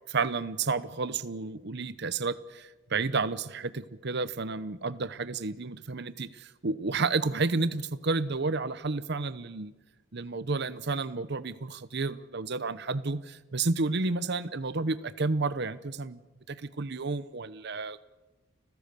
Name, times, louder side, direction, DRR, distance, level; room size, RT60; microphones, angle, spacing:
voice 1, 0.1-9.7 10.1-16.2 16.5-18.0, right 3 dB, 55° right, 15 dB, 0.9 m, -31 dB
30.0 x 15.5 x 6.9 m, 1.1 s
head